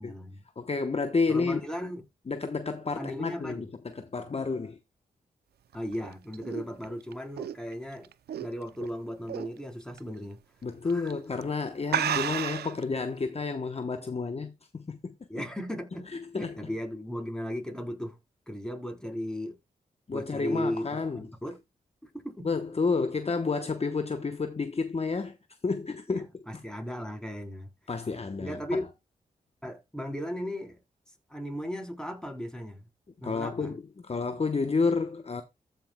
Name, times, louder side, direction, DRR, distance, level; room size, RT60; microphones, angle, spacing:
voice 1, 0.0-0.4 1.3-2.0 3.0-3.7 5.7-8.1 8.4-10.4 10.8-11.1 15.3-16.1 16.3-18.2 18.5-19.6 20.1-21.6 22.0-22.5 26.1-27.7 28.4-28.9 29.6-30.8 31.3-32.8 33.2-33.7, equal, 5° left, 3.8 m, -36 dB
voice 2, 0.6-1.6 2.3-4.8 10.6-15.1 16.1-16.5 20.1-21.3 22.4-25.4 25.6-26.4 27.9-28.8 33.2-35.4, left 4 dB, 40° left, 1.0 m, -30 dB
sound 1, 5.7-8.9 9.3-9.6 10.0-10.1 10.9-11.1 11.4-11.5 11.9-12.8, right 10 dB, 80° right, 0.5 m, -32 dB
14.5 x 5.7 x 2.2 m
supercardioid pair, 40°, 17 cm